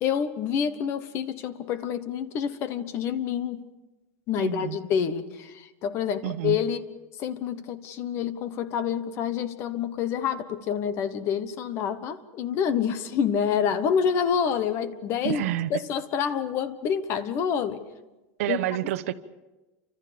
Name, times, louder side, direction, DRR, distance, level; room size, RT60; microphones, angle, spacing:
voice 1, 0.0-3.6 4.3-6.9 7.2-15.4 15.7-17.8 18.5-18.6, left 7 dB, 35° left, 13 dB, 1.2 m, -27 dB
voice 2, 4.4-4.8 6.2-6.6 15.2-15.8 18.4-19.1, right 14 dB, 70° right, 13 dB, 1.0 m, -28 dB
29.0 x 26.0 x 5.2 m, 1.1 s
supercardioid pair, 170°, 8 cm